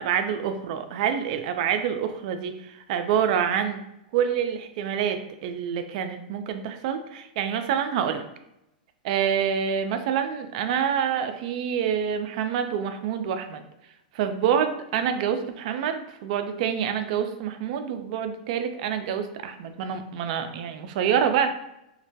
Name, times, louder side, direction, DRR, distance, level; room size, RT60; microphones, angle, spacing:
voice 1, 0.0-3.8 4.1-8.2 9.0-13.6 14.1-21.5, right 8 dB, 55° right, 8 dB, 0.3 m, -27 dB
2.2 x 2.1 x 2.7 m, 0.84 s
hypercardioid pair, 130°, 5 cm